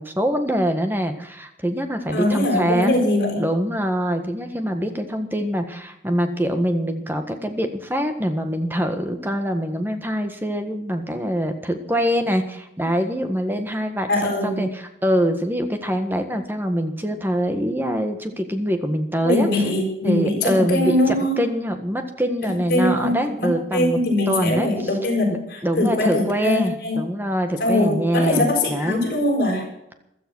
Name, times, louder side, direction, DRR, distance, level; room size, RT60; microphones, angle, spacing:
voice 1, 0.0-3.0 3.4-19.5 20.0-24.0 24.3-24.7 25.6-29.0, equal, 10° right, 6 dB, 1.6 m, -24 dB
voice 2, 2.1-3.4 14.1-14.7 19.2-21.5 22.4-27.0 27.6-29.7, left 1 dB, 55° left, 0 dB, 7.0 m, -22 dB
15.5 x 13.0 x 6.3 m, 0.83 s
head